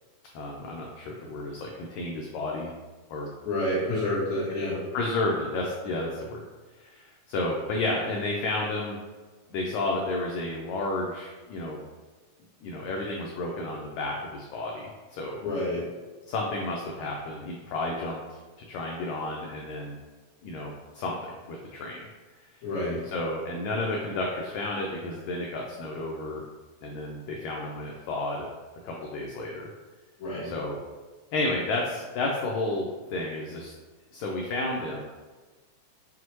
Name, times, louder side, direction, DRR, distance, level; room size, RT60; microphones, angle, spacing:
voice 1, 0.3-2.7 3.1-3.3 4.9-6.4 6.7-9.0 9.5-11.8 12.6-15.4 16.3-18.2 18.7-20.0 20.4-22.0 22.4-22.6 23.0-26.4 26.8-28.5 28.8-29.7 30.4-30.8 31.3-33.7 34.1-35.0, left 2 dB, 90° left, -1 dB, 1.6 m, -31 dB
voice 2, 3.4-4.8 15.4-15.8 22.6-23.0 30.2-30.5, left 1 dB, 70° left, -10 dB, 1.9 m, -28 dB
6.2 x 2.1 x 2.9 m, 1.3 s
omnidirectional pair, 3.8 m